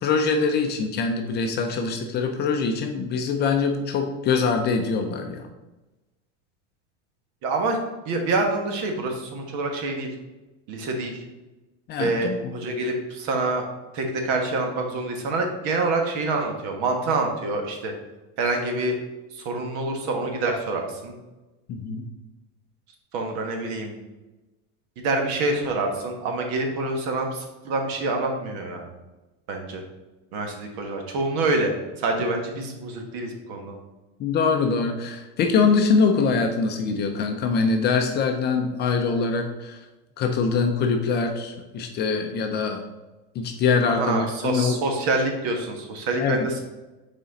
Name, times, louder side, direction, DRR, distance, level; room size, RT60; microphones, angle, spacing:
voice 1, 0.0-5.5 11.9-12.5 21.7-22.0 34.2-39.8 40.2-42.8 43.3-44.8 46.2-46.5, left 5 dB, 30° left, 4 dB, 0.6 m, -23 dB
voice 2, 7.4-7.8 8.0-10.1 10.7-11.1 12.0-13.7 13.9-17.9 18.4-19.0 19.3-21.1 23.1-23.9 25.0-28.8 29.5-29.8 30.3-33.8 43.9-46.6, right 2 dB, 55° right, 3 dB, 1.4 m, -26 dB
6.1 x 4.3 x 4.0 m, 1.1 s
supercardioid pair, 155°, 35 cm